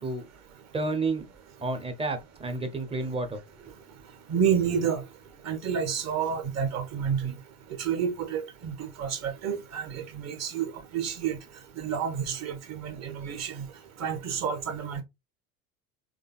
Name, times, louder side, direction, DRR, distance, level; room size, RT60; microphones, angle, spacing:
voice 1, 0.7-1.3 1.6-3.4, right 3 dB, 15° right, 0.8 m, -30 dB
voice 2, 4.3-5.0 5.4-7.3 7.8-11.4 11.8-13.6 14.0-15.0, right 7 dB, 35° right, 1.2 m, -29 dB
3.8 x 3.4 x 2.3 m
figure-of-eight pair, 70°, 46 cm